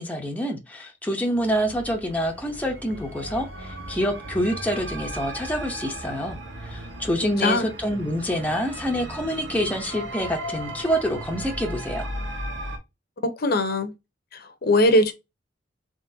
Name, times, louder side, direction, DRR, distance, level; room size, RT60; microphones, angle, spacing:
voice 1, 0.0-12.1, equal, 10° left, 0.7 m, -27 dB
sound 1, 1.3-12.8, right 1 dB, 70° right, 1.2 m, -36 dB
voice 2, 7.2-7.7 13.2-13.9 14.3-15.1, left 1 dB, 55° left, 0.7 m, -21 dB
3.8 x 3.1 x 2.6 m
head